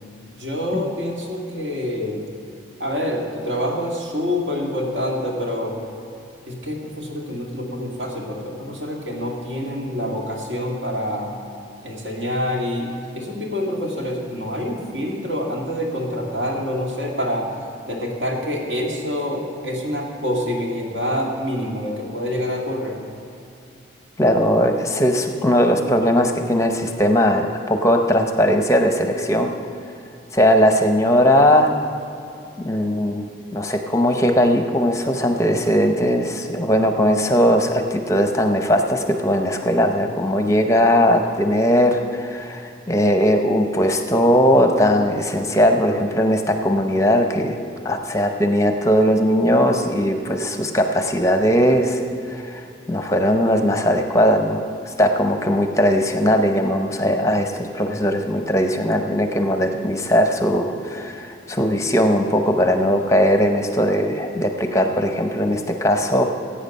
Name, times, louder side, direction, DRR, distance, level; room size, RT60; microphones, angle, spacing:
voice 1, 0.3-2.2 2.8-5.8 6.5-11.3 11.8-17.6 17.8-23.0, left 1 dB, 70° right, -1 dB, 2.2 m, -26 dB
voice 2, 24.2-29.5 30.3-31.7 32.6-33.3 33.5-47.6 47.8-52.0 52.3-52.6 52.9-54.6 55.0-66.2, equal, 15° left, 5 dB, 0.7 m, -19 dB
15.5 x 8.8 x 5.4 m, 2.6 s
head